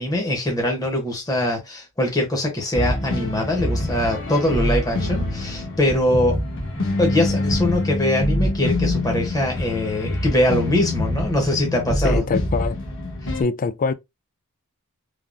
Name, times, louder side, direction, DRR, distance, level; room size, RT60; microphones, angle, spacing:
voice 1, 0.0-6.4 7.0-12.2 13.2-13.3, left 1 dB, 15° left, 0.8 m, -22 dB
sound 1, 2.7-13.4, left 1 dB, 60° left, 1.0 m, -25 dB
voice 2, 12.0-12.8 13.4-13.9, left 4 dB, 35° left, 0.3 m, -23 dB
3.3 x 2.0 x 2.5 m
head